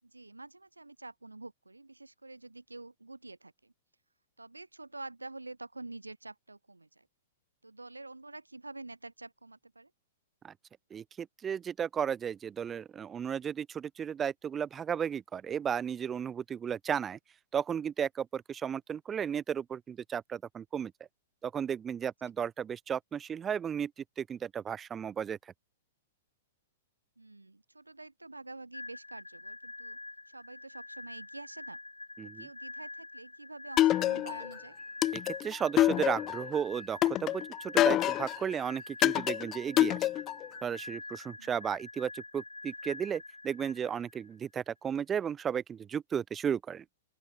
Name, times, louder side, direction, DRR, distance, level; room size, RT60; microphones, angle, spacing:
voice 1, 0.0-3.7 4.4-7.1 7.6-9.9 27.2-30.0 30.3-31.8 32.2-34.8 41.4-41.5, right 2 dB, 85° right, 5.2 m, -47 dB
voice 2, 10.9-17.2 17.5-20.9 21.4-23.9 24.2-25.4 32.2-32.5 35.1-40.1 40.6-46.8, right 8 dB, 20° right, 1.2 m, -34 dB
sound 1, 28.7-44.3, left 2 dB, 85° left, 1.4 m, -46 dB
sound 2, 33.8-34.5 35.0-36.5 37.0-38.4 39.0-40.5, left 14 dB, 30° left, 0.3 m, -26 dB
open air
figure-of-eight pair, 105°, 0 cm